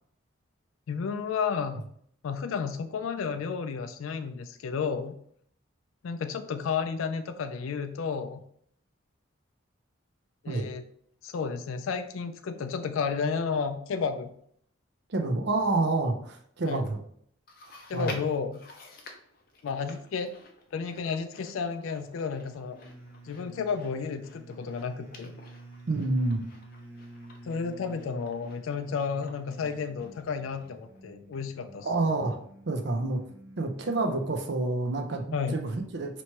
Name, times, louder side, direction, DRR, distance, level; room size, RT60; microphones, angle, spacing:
voice 1, 0.9-1.8 2.2-5.2 6.0-8.4 10.4-10.8 11.2-14.3 16.6-16.8 17.9-18.6 19.6-20.3 20.7-22.8 23.2-25.3 27.4-31.9 35.3-35.6, left 5 dB, 85° left, 8 dB, 0.4 m, -32 dB
voice 2, 15.1-17.0 17.6-18.2 25.9-26.4 31.8-32.4 32.7-33.2 33.6-36.2, right 2 dB, 55° right, 4 dB, 0.6 m, -28 dB
Chewing mastication, 17.5-31.0 31.3-31.4 32.2-32.3, left 2 dB, 45° left, 0.6 m, -50 dB
sound 1, 22.7-34.6, right 2 dB, 10° right, 0.8 m, -50 dB
3.0 x 2.9 x 4.4 m, 0.65 s
head